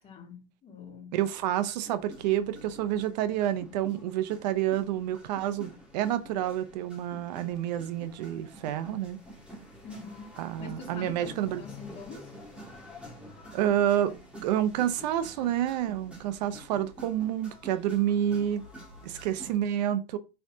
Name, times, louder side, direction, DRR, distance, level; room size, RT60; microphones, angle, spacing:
voice 1, 0.0-1.2 9.8-12.3, left 3 dB, 30° left, 2.7 m, -44 dB
voice 2, 1.1-9.2 10.4-11.6 13.5-14.1 14.4-18.6 19.0-20.2, right 11 dB, 85° right, 0.7 m, -29 dB
sound 1, 1.2-19.6, equal, 5° right, 2.4 m, -49 dB
6.2 x 5.7 x 2.8 m
supercardioid pair, 125°, 21 cm